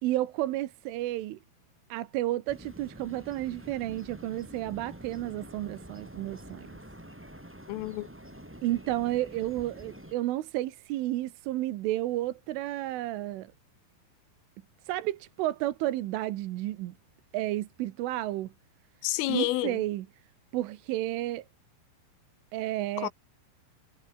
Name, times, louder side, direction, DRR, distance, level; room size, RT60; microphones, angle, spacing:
voice 1, 0.0-1.4 1.9-6.7 8.6-13.5 14.9-17.0 17.3-18.5 19.3-20.1 20.5-21.5 22.5-23.1, right 15 dB, 80° right, 3.7 m, -31 dB
sound 1, 2.5-10.1, right 1 dB, 10° right, 0.5 m, -47 dB
voice 2, 7.7-8.1 19.0-19.8 23.0-23.1, left 18 dB, 85° left, 3.5 m, -29 dB
omnidirectional pair, 5.7 m